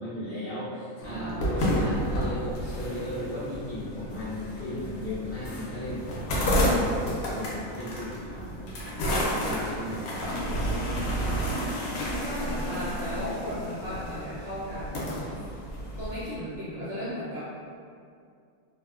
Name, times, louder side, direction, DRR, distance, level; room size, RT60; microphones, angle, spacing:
voice 1, 0.0-6.3 6.7-10.4, left 1 dB, 50° left, -12 dB, 0.7 m, -36 dB
sound 1, 1.0-16.3, equal, 75° left, 1.0 m, -31 dB
voice 2, 1.0-1.8 11.1-11.7 12.1-15.4 16.0-17.5, equal, 60° right, -11 dB, 0.7 m, -36 dB
2.8 x 2.1 x 2.3 m, 2.3 s
omnidirectional pair, 1.5 m